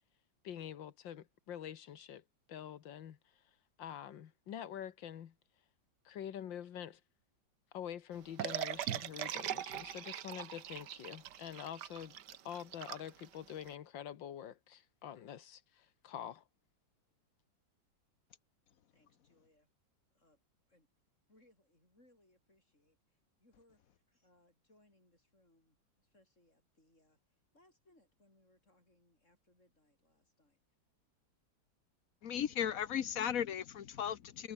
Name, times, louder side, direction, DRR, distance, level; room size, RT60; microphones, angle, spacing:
voice 1, 0.4-2.2 2.5-3.2 3.8-5.3 6.1-7.0 7.7-12.2 12.5-16.4, left 10 dB, 75° left, 2.0 m, -46 dB
sound 1, 8.4-13.7, right 11 dB, 65° right, 1.5 m, -41 dB
voice 2, 18.9-19.7 20.1-20.4 20.7-20.9 21.3-30.6, left 1 dB, 35° left, 7.9 m, -71 dB
voice 3, 32.2-34.5, left 9 dB, 55° left, 1.2 m, -36 dB
omnidirectional pair, 2.1 m